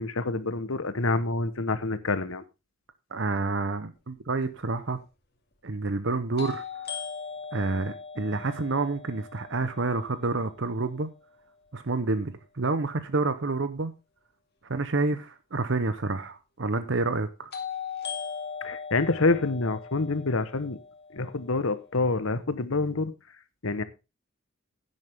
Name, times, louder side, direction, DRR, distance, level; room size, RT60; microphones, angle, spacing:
voice 1, 0.0-2.4 18.6-20.8 21.1-23.1 23.6-23.8, left 3 dB, 70° left, 1.1 m, -27 dB
voice 2, 3.1-5.0 5.6-6.6 7.5-11.1 11.7-13.9 14.7-17.5, right 3 dB, 55° right, 0.8 m, -28 dB
sound 1, 4.4-4.5 6.4-10.3 17.5-21.5, left 6 dB, 50° left, 2.3 m, -39 dB
10.5 x 9.7 x 3.5 m
head